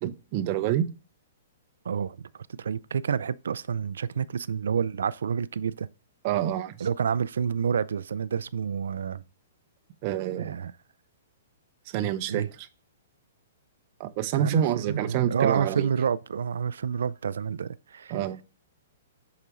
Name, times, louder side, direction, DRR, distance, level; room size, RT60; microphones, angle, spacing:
voice 1, 0.0-0.9 6.2-6.9 10.0-10.5 11.9-12.7 14.0-15.9 18.1-18.4, right 11 dB, 40° right, 0.6 m, -27 dB
voice 2, 1.9-2.2 2.6-5.9 6.8-9.2 10.4-10.7 12.3-12.5 14.3-18.2, right 7 dB, 80° right, 0.3 m, -28 dB
6.7 x 4.8 x 3.0 m
hypercardioid pair, 145°, 0 cm